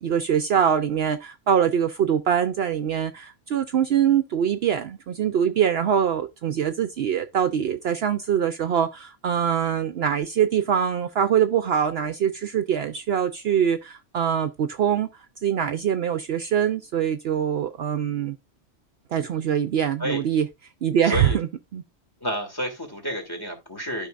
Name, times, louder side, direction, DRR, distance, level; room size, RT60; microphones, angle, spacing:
voice 1, 0.0-18.4 19.1-20.5 20.8-21.5 21.7-21.8, right 8 dB, 65° right, 0.8 m, -23 dB
voice 2, 21.0-21.4 22.2-24.1, equal, 20° left, 2.5 m, -30 dB
12.5 x 5.3 x 2.4 m
omnidirectional pair, 1.3 m